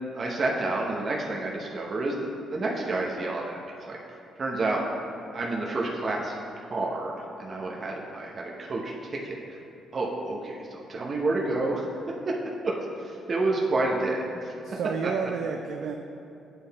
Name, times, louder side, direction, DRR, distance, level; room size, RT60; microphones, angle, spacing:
voice 1, 0.1-3.6 3.9-4.0 4.4-4.8 5.3-6.3 6.7-7.1 7.4-8.9 9.2-9.4 9.9-11.9 12.6-14.5 15.0-15.1, right 2 dB, 40° right, -2 dB, 0.8 m, -29 dB
voice 2, 14.6-16.0, right 6 dB, 75° right, 4 dB, 0.3 m, -30 dB
8.7 x 3.9 x 4.1 m, 2.7 s
cardioid pair, 90°, 0 cm